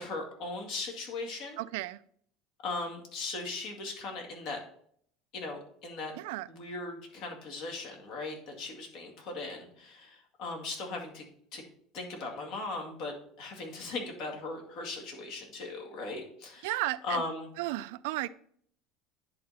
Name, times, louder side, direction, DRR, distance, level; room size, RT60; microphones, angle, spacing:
voice 1, 0.0-1.6 2.6-4.6 5.3-6.1 6.5-11.2 11.5-11.6 11.9-16.7 17.0-17.5, left 3 dB, 65° left, 2.1 m, -38 dB
voice 2, 1.6-2.0 6.2-6.5 16.6-17.2 17.6-18.3, right 18 dB, 85° right, 0.3 m, -33 dB
10.5 x 3.8 x 4.1 m
cardioid pair, 140°, 0 cm